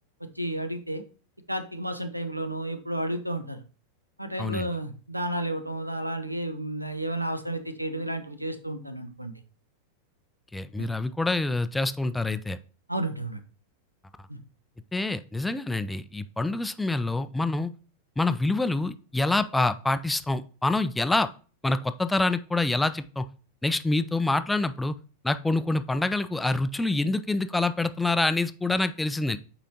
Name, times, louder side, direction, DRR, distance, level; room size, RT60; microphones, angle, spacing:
voice 1, 0.4-1.0 1.5-3.6 4.2-9.3 10.8-10.9 12.9-13.4 14.3-14.4, right 1 dB, 90° right, 9 dB, 0.8 m, -32 dB
voice 2, 10.5-12.6 14.9-17.7 18.2-21.3 21.6-23.3 23.6-24.9 25.2-29.4, left 2 dB, 5° left, 12 dB, 0.4 m, -26 dB
8.3 x 4.9 x 2.8 m, 0.37 s
figure-of-eight pair, 90°, 0 cm